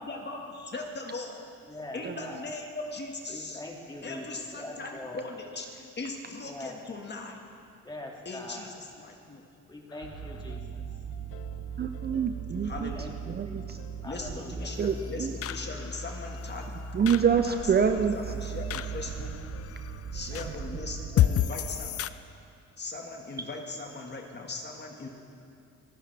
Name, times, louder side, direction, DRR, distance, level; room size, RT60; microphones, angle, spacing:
voice 1, 0.0-1.4 1.9-3.6 4.0-7.4 8.2-9.4 12.6-13.1 14.0-16.8 17.4-19.4 20.1-22.1 22.8-25.1, left 3 dB, 35° left, 2 dB, 1.7 m, -39 dB
voice 2, 1.7-2.5 3.3-4.3 4.5-5.2 6.4-6.8 7.8-8.7 9.7-10.8 12.7-13.6 14.0-14.7 15.1-15.4 20.3-20.4, left 1 dB, 15° left, 0 dB, 2.3 m, -43 dB
sound 1, 9.9-22.1, left 12 dB, 50° left, 0.5 m, -35 dB
sound 2, 10.0-21.7, right 5 dB, 90° right, 2.5 m, -39 dB
voice 3, 11.8-12.9 13.3-13.8 14.8-15.3 16.9-18.2, right 7 dB, 35° right, 7 dB, 0.6 m, -26 dB
28.0 x 9.7 x 3.4 m, 2.5 s
cardioid pair, 90°, 30 cm